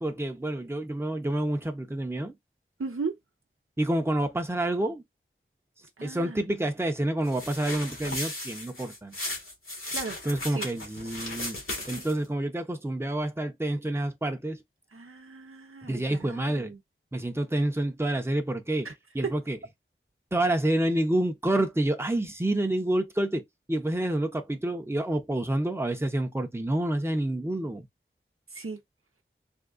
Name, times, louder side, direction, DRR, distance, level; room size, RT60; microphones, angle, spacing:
voice 1, 0.0-2.4 3.8-5.0 6.0-9.2 10.2-11.6 11.9-14.6 15.9-16.7 17.1-18.9 19.1-19.6 20.3-23.4 23.7-27.9, right 1 dB, 10° right, 0.7 m, -28 dB
voice 2, 2.8-3.2 6.0-6.4 9.9-10.2 10.4-10.7 14.9-16.8 18.8-18.9 19.2-19.3 28.5-28.8, right 4 dB, 85° right, 0.7 m, -36 dB
sound 1, 7.2-12.3, left 1 dB, 75° left, 1.5 m, -36 dB
3.6 x 2.3 x 2.4 m
wide cardioid pair, 45°, 21 cm